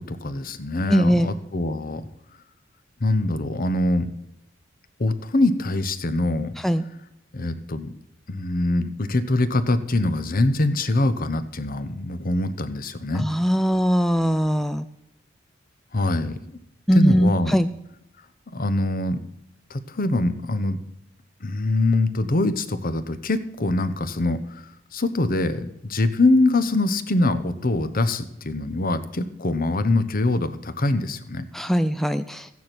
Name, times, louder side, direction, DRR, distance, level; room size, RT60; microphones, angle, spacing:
voice 1, 0.0-2.0 3.0-4.1 5.0-6.5 7.3-7.9 8.3-13.3 15.9-16.4 16.9-17.5 18.5-19.2 19.7-20.8 21.4-31.4, left 2 dB, 45° left, 12 dB, 0.9 m, -23 dB
voice 2, 0.9-1.3 6.6-6.8 13.1-14.9 16.9-17.7 31.5-32.5, equal, ahead, 10 dB, 0.4 m, -21 dB
14.5 x 9.6 x 6.0 m, 0.83 s
head